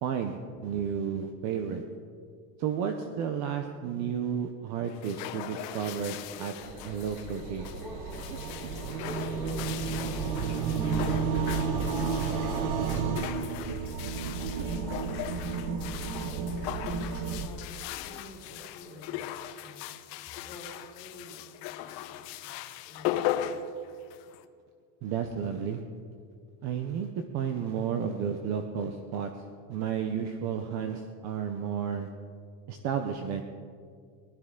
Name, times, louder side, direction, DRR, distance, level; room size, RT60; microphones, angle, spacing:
voice 1, 0.0-1.8 2.6-6.5 6.8-7.7 8.3-8.7 9.0-9.2 14.6-14.7 25.0-25.8 26.6-29.4 29.7-32.1 32.7-33.4, right 7 dB, 35° right, 6 dB, 0.6 m, -32 dB
sound 1, 4.8-24.4, left 11 dB, 85° left, 1.0 m, -39 dB
sound 2, 5.2-13.3, left 1 dB, 5° right, 1.4 m, -44 dB
sound 3, 6.6-17.5, right 5 dB, 55° right, 1.0 m, -32 dB
voice 2, 9.9-11.0 11.3-13.5 14.0-15.0 15.3-16.4 17.2-19.9 20.4-22.5 22.8-23.5, left 2 dB, 10° left, -8 dB, 4.1 m, -49 dB
19.5 x 12.5 x 3.7 m, 2.2 s
cardioid pair, 180°, 48 cm